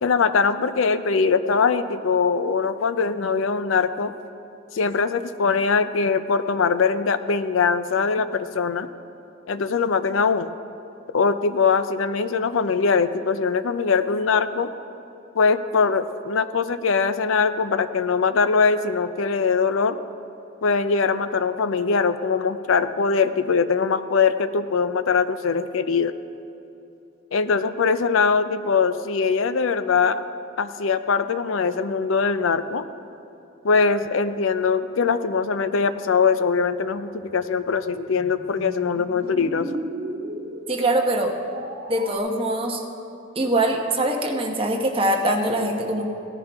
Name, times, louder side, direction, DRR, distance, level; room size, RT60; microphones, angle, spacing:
voice 1, 0.0-4.1 4.7-8.9 9.5-10.5 11.1-14.7 15.3-20.0 20.6-26.1 27.3-30.2 30.6-32.9 33.6-39.7, left 5 dB, 70° left, 12 dB, 0.5 m, -22 dB
sound 1, 37.2-42.2, right 1 dB, 50° right, 1.8 m, -36 dB
voice 2, 40.7-41.3 41.9-42.8 43.3-46.0, right 1 dB, 25° right, 1 dB, 1.1 m, -23 dB
16.5 x 10.0 x 3.5 m, 2.9 s
head